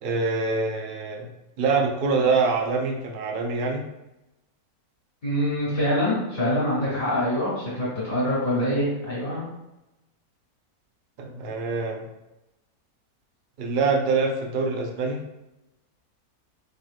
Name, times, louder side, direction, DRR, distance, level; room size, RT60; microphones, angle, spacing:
voice 1, 0.0-1.3 1.6-3.8 11.2-12.0 13.6-15.2, right 4 dB, 85° right, 1 dB, 0.4 m, -25 dB
voice 2, 5.2-9.4, equal, 40° left, -9 dB, 1.9 m, -25 dB
4.5 x 3.0 x 2.4 m, 0.95 s
omnidirectional pair, 1.6 m